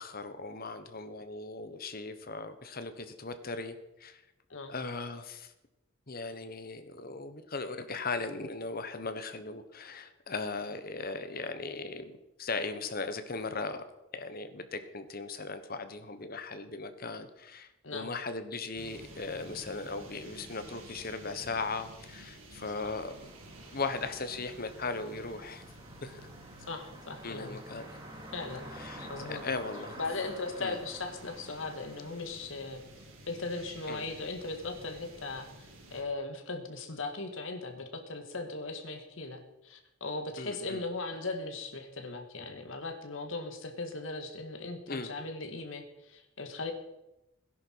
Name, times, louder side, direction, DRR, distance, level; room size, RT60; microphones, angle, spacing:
voice 1, 0.0-4.2 4.7-5.5 6.1-13.8 14.1-23.3 23.7-25.6 26.0-26.3 27.2-28.0 28.7-30.0 30.6-30.8 33.9-34.0 40.4-40.8 44.9-45.1, left 3 dB, 45° left, 10 dB, 1.3 m, -38 dB
sound 1, 18.8-36.0, right 1 dB, 80° right, 3.2 m, -52 dB
sound 2, 22.6-32.9, right 1 dB, 25° right, 2.7 m, -50 dB
voice 2, 26.7-27.6 28.3-28.7 29.1-29.4 30.0-32.8 33.3-46.7, left 3 dB, 70° left, 5 dB, 2.0 m, -38 dB
17.5 x 11.0 x 4.7 m, 0.94 s
head